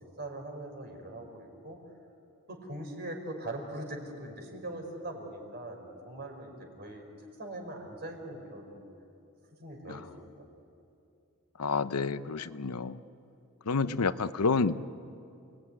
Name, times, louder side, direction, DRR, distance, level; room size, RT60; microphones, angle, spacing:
voice 1, 0.2-1.8 2.5-7.0 7.4-8.8 9.6-10.5, right 1 dB, 50° right, 3 dB, 4.7 m, -41 dB
voice 2, 11.6-13.0 13.7-14.8, left 4 dB, 90° left, 13 dB, 0.8 m, -29 dB
28.5 x 19.5 x 9.6 m, 2.6 s
head